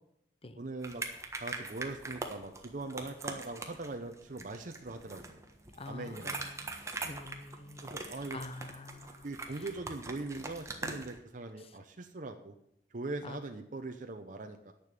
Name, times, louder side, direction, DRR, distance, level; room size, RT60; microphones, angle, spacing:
voice 1, 0.6-1.0 1.4-5.4 5.9-6.4 7.8-8.4 9.2-12.5 12.9-14.7, right 2 dB, 45° right, 5 dB, 0.8 m, -41 dB
sound 1, 0.8-11.2, right 3 dB, 15° right, 1.3 m, -43 dB
voice 2, 5.7-6.7 7.0-9.7 11.6-11.8 13.2-13.4, left 2 dB, 35° left, 11 dB, 0.9 m, -47 dB
10.0 x 6.9 x 9.0 m, 0.78 s
head